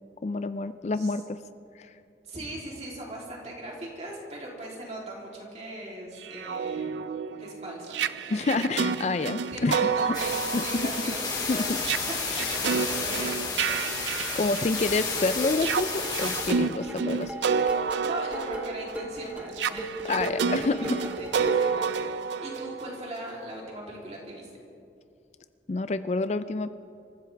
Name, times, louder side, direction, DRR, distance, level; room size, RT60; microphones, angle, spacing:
voice 1, 0.2-1.4 1.8-1.9 8.3-10.2 10.5-10.9 11.5-11.6 12.3-12.5 14.2-17.5 20.0-21.0 25.7-26.7, left 3 dB, 40° left, 12 dB, 0.4 m, -28 dB
voice 2, 2.2-7.1 7.4-8.9 9.5-14.3 16.4-16.5 18.0-24.5, right 1 dB, 35° right, -3 dB, 3.2 m, -40 dB
sound 1, 6.2-15.1 15.5-23.3, right 6 dB, 85° right, 0.5 m, -30 dB
sound 2, 10.1-16.5, left 4 dB, 25° left, 2.1 m, -31 dB
sound 3, 14.8-21.8, right 2 dB, 10° right, 1.3 m, -37 dB
26.5 x 15.0 x 3.4 m, 2.6 s
head